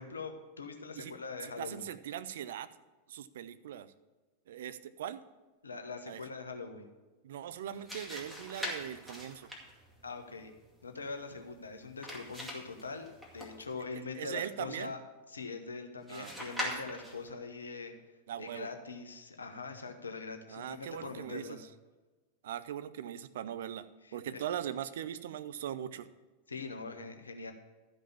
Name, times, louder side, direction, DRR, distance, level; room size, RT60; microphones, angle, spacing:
voice 1, 0.0-1.8 5.6-6.9 10.0-10.5 10.8-13.1 13.3-15.0 15.3-17.9 18.4-21.6 24.0-24.4 26.5-27.5, left 4 dB, 75° left, 6 dB, 1.1 m, -42 dB
voice 2, 1.4-2.7 3.1-3.9 4.5-5.2 6.1-6.2 7.2-9.5 14.1-14.9 16.1-16.3 18.3-18.7 20.5-21.6 22.4-26.1, right 10 dB, 60° right, 13 dB, 0.5 m, -40 dB
sound 1, 7.6-13.9 16.1-17.3, equal, 5° right, 2.4 m, -43 dB
12.5 x 5.3 x 7.0 m, 1.2 s
figure-of-eight pair, 90°, 0 cm